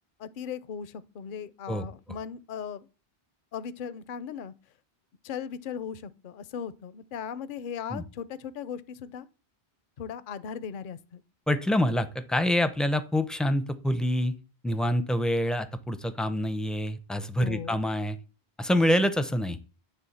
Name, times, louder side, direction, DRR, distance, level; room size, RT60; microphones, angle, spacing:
voice 1, 0.2-2.9 3.5-4.5 5.2-9.3 10.0-11.2 17.4-17.8, left 7 dB, 60° left, 0.7 m, -38 dB
voice 2, 11.5-14.4 14.6-18.2 18.6-19.6, left 1 dB, ahead, 0.5 m, -26 dB
9.7 x 3.5 x 7.0 m
omnidirectional pair, 1.0 m